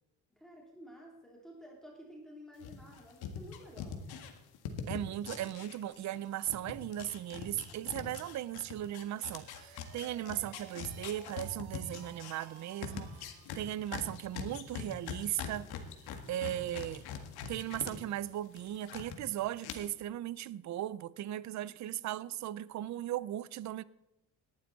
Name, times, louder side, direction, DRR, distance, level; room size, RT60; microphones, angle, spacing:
voice 1, 0.4-4.0, equal, ahead, 3.0 m, -52 dB
sound 1, 2.6-6.2 6.4-17.9 18.2-19.2 19.6-19.7, left 8 dB, 85° left, 1.9 m, -43 dB
voice 2, 4.9-13.1 13.6-15.7 16.3-17.0 17.5-23.8, right 12 dB, 50° right, 0.5 m, -37 dB
sound 2, 9.0-13.8, right 9 dB, 85° right, 1.8 m, -56 dB
18.0 x 11.5 x 4.1 m
cardioid pair, 130°, 37 cm